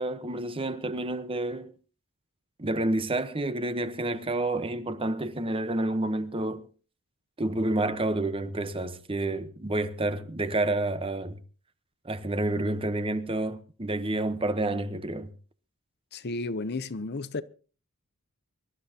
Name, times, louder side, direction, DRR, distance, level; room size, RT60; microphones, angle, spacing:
voice 1, 0.0-1.7 2.6-6.7 7.4-11.4 12.0-15.3, right 2 dB, 25° right, 1.0 m, -29 dB
voice 2, 16.1-17.4, left 3 dB, 50° left, 0.7 m, -33 dB
25.0 x 12.5 x 2.9 m
head